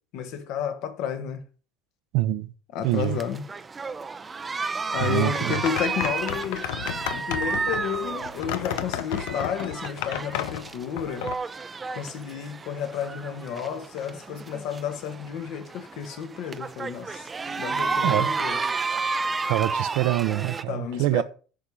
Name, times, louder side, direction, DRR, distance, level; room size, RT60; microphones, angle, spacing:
voice 1, 0.1-1.4 2.7-3.4 4.9-11.3 11.9-18.6 20.7-21.2, left 8 dB, 60° left, 1.5 m, -32 dB
voice 2, 2.1-2.5 2.8-3.2 5.0-5.5 18.0-18.3 19.5-21.2, right 15 dB, 70° right, 0.7 m, -25 dB
sound 1, 2.8-20.6, right 4 dB, 15° right, 0.5 m, -32 dB
sound 2, 5.0-11.3, left 11 dB, 85° left, 0.8 m, -32 dB
10.0 x 4.9 x 5.5 m
cardioid pair, 140°, 0 cm